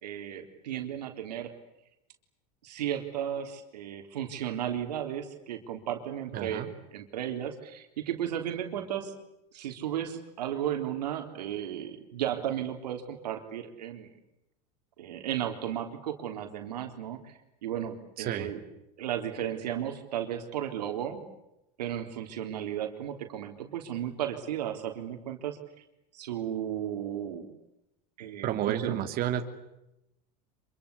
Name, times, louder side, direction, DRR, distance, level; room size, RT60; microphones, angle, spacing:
voice 1, 0.0-1.5 2.6-6.6 6.9-9.1 9.5-14.1 15.0-18.6 19.0-21.2 21.8-25.6 26.1-27.5 28.2-29.0, right 10 dB, 90° right, 5 dB, 3.7 m, -34 dB
voice 2, 6.3-6.7 18.2-18.5 28.4-29.4, right 11 dB, 50° right, 5 dB, 2.9 m, -30 dB
26.0 x 24.5 x 8.4 m, 0.88 s
supercardioid pair, 105°, 20 cm